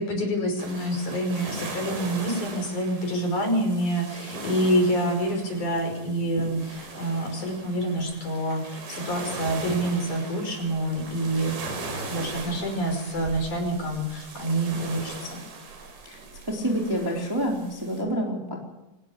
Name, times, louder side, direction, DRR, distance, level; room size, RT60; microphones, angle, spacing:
voice 1, 0.0-11.6 12.1-15.4, right 1 dB, 45° left, 4 dB, 6.8 m, -27 dB
sound 1, 0.6-18.0, right 3 dB, 75° right, 6.7 m, -39 dB
voice 2, 16.5-18.6, equal, 5° right, 0 dB, 3.1 m, -27 dB
24.5 x 19.0 x 8.4 m, 0.94 s
omnidirectional pair, 5.1 m